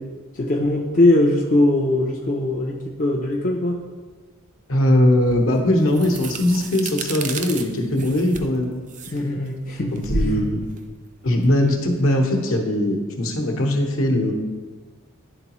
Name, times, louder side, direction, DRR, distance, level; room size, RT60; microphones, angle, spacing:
voice 1, 0.3-3.8 9.1-10.5, left 1 dB, 35° left, 0 dB, 0.4 m, -21 dB
voice 2, 4.7-8.8 9.9-10.6 11.2-14.3, left 1 dB, 65° left, 1 dB, 0.9 m, -20 dB
sound 1, 5.3-12.1, right 3 dB, 35° right, 0.4 m, -32 dB
11.0 x 3.9 x 3.0 m, 1.4 s
head